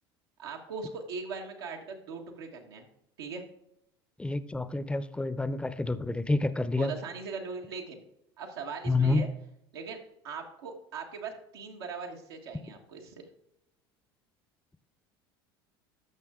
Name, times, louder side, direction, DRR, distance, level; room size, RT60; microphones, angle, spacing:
voice 1, 0.4-2.8 3.2-3.4 6.7-8.0 8.4-9.3 9.7-10.0 10.2-13.2, right 4 dB, 85° right, 1 dB, 1.5 m, -40 dB
voice 2, 4.2-6.9 8.9-9.2, left 2 dB, 10° left, 13 dB, 0.6 m, -28 dB
13.5 x 5.5 x 3.7 m, 0.80 s
hypercardioid pair, 85°, 13 cm